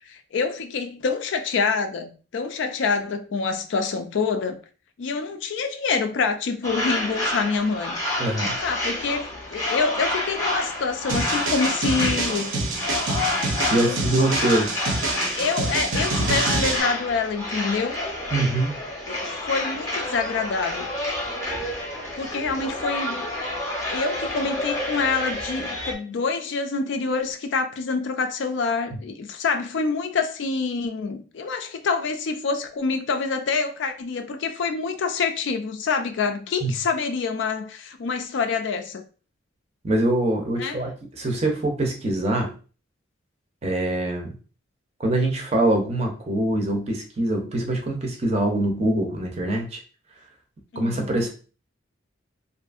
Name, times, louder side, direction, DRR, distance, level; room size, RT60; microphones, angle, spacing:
voice 1, 0.1-4.6 5.0-8.0 8.6-12.5 13.8-14.1 15.3-18.0 19.1-20.9 22.2-23.3 23.9-39.1 40.6-40.8 50.7-51.2, left 4 dB, 65° left, 0.4 m, -26 dB
sound 1, 6.6-25.9, left 1 dB, 15° left, 0.6 m, -29 dB
voice 2, 8.2-8.6 13.6-14.7 18.3-18.8 36.6-36.7 39.8-42.5 43.6-44.3 45.0-49.8 50.8-51.3, right 1 dB, 30° right, 0.5 m, -24 dB
sound 2, 11.1-16.8, right 2 dB, 80° right, 0.6 m, -27 dB
2.6 x 2.4 x 2.3 m
head